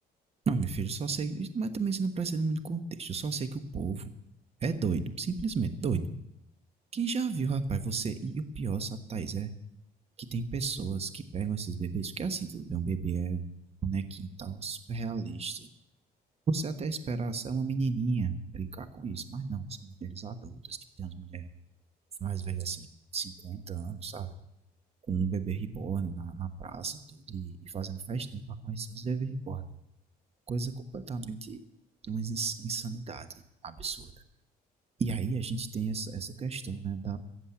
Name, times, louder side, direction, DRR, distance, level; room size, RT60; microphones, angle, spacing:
voice 1, 0.5-4.1 4.6-6.1 6.9-9.5 10.2-13.5 13.8-15.7 16.5-21.5 22.2-22.9 23.1-24.3 25.1-29.7 30.5-31.6 32.0-34.1 35.0-37.2, right 5 dB, 35° right, 11 dB, 1.2 m, -33 dB
14.5 x 7.5 x 8.6 m, 0.83 s
cardioid pair, 110°, 17 cm